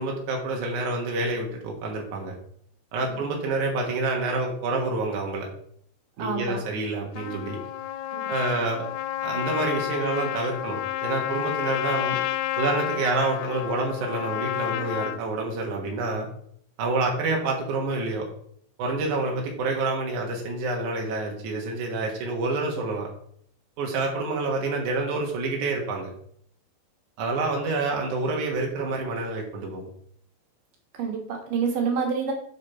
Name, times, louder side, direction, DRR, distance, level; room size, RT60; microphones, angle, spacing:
voice 1, 0.0-2.3 2.9-5.5 6.2-7.6 8.3-8.8 9.2-12.2 12.6-16.3 16.8-18.2 18.8-23.1 23.8-26.1 27.2-29.9, right 3 dB, 90° right, 0 dB, 1.7 m, -28 dB
voice 2, 6.2-6.6 8.1-8.3 30.9-32.3, right 5 dB, 65° right, 1 dB, 2.2 m, -28 dB
Trumpet, 7.2-15.2, left 13 dB, 90° left, 3.3 m, -30 dB
9.2 x 5.3 x 4.4 m, 0.64 s
omnidirectional pair, 5.9 m